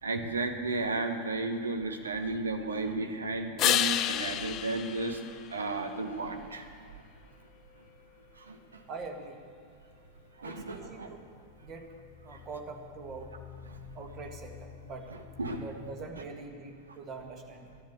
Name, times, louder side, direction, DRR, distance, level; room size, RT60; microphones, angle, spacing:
voice 1, 0.0-5.2 5.5-6.6 6.9-7.0 8.4-8.8 10.4-11.1 12.3-12.4 15.1-15.6, right 3 dB, 75° right, 5 dB, 1.2 m, -34 dB
sound 1, 3.6-6.1 11.9-15.9, left 12 dB, 35° left, 0.4 m, -34 dB
voice 2, 8.9-9.4 10.4-11.2 11.6-11.9 12.2-13.3 13.9-15.2 15.6-17.8, right 4 dB, 30° right, 4 dB, 2.0 m, -43 dB
13.5 x 10.5 x 8.5 m, 2.2 s
figure-of-eight pair, 90°, 0 cm